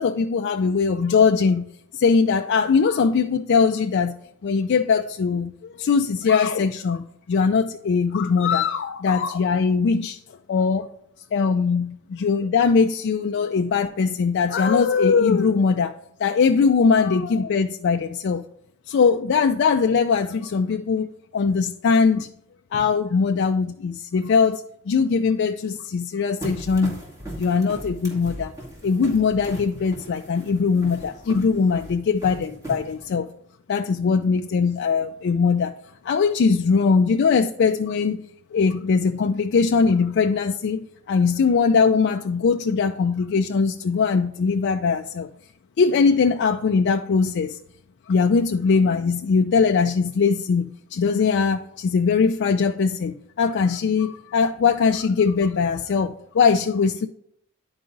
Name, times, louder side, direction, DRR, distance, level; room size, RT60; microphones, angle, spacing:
voice 1, 0.0-1.6 1.9-4.2 4.4-10.2 10.5-10.9 11.3-18.4 18.9-22.3 22.7-27.0 27.4-28.5 28.8-33.3 33.7-35.7 36.0-38.2 38.5-45.3 45.8-47.6 48.1-57.1, left 5 dB, 55° left, 0.4 m, -21 dB
sound 1, 26.4-33.2, right 1 dB, 15° right, 2.3 m, -38 dB
10.5 x 4.8 x 3.9 m
head